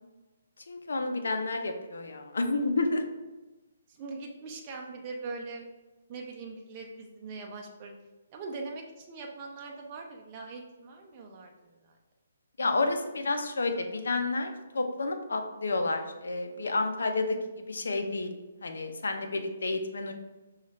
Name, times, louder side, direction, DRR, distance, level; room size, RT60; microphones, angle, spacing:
voice 1, 0.7-3.0 12.6-17.4 17.7-18.3 18.6-20.1, left 3 dB, 75° left, 5 dB, 0.6 m, -30 dB
voice 2, 3.9-5.7 6.1-8.0 8.3-12.0, right 3 dB, 30° right, 1 dB, 0.6 m, -41 dB
5.5 x 2.4 x 3.1 m, 1.1 s
hypercardioid pair, 145°, 0 cm